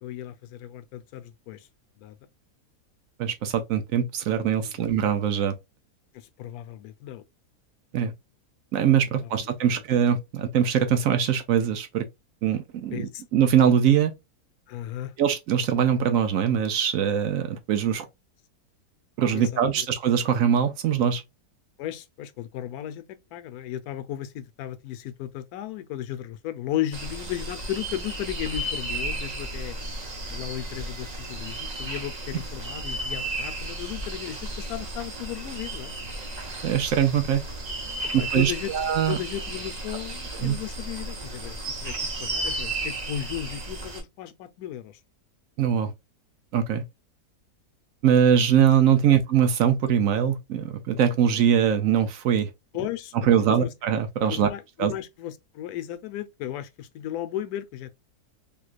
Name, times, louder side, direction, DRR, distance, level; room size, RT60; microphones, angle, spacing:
voice 1, 0.0-1.7 2.0-2.2 4.6-4.9 6.1-7.2 9.2-9.8 12.9-13.2 14.7-15.1 19.3-19.9 21.8-29.8 30.3-35.9 38.2-38.7 39.1-41.9 42.2-45.0 49.0-49.2 52.7-53.7 54.3-57.9, left 12 dB, 75° left, 1.0 m, -35 dB
voice 2, 3.2-5.5 7.9-8.1 8.7-12.0 12.4-14.1 15.2-18.1 19.2-21.2 36.6-37.4 38.1-39.2 40.4-40.5 45.6-45.9 46.5-46.8 48.0-52.5 53.3-54.5 54.8-54.9, right 8 dB, 65° right, 0.9 m, -22 dB
sound 1, 26.9-44.0, right 2 dB, 35° right, 0.7 m, -34 dB
3.5 x 3.1 x 2.4 m
omnidirectional pair, 1.7 m